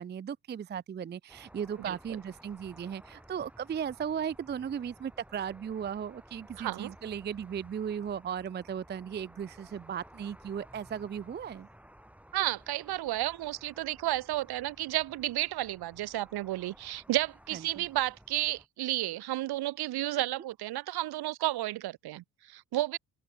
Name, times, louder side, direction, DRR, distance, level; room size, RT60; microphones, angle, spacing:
voice 1, 0.0-11.7 17.5-17.8, right 8 dB, 20° right, 0.6 m, -36 dB
sound 1, 1.3-18.7, equal, 5° right, 6.6 m, -56 dB
voice 2, 6.6-6.9 12.3-23.0, right 15 dB, 55° right, 1.2 m, -32 dB
open air
figure-of-eight pair, 45°, 47 cm